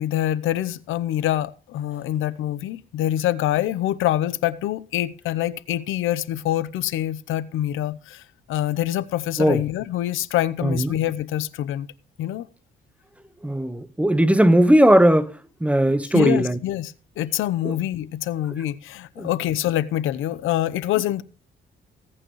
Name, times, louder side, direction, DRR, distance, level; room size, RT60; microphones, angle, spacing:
voice 1, 0.0-11.9 12.2-12.5 16.1-21.2, left 13 dB, 85° left, 0.8 m, -25 dB
voice 2, 13.4-16.6 17.6-17.7 19.2-19.3, right 1 dB, 5° right, 1.0 m, -18 dB
19.5 x 8.9 x 3.0 m
cardioid pair, 90°, 20 cm